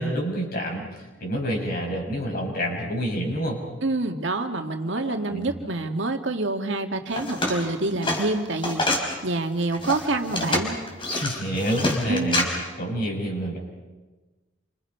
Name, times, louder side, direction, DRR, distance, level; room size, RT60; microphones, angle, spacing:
voice 1, 0.0-3.6 4.9-5.7 11.1-13.6, equal, 50° left, 0 dB, 7.0 m, -28 dB
voice 2, 3.8-9.0 9.2-10.8 12.1-12.4, right 2 dB, 70° right, 4 dB, 1.9 m, -27 dB
sound 1, 7.1-9.1 9.6-12.4, left 1 dB, 25° left, 4.5 m, -26 dB
29.5 x 26.5 x 5.6 m, 1.2 s
head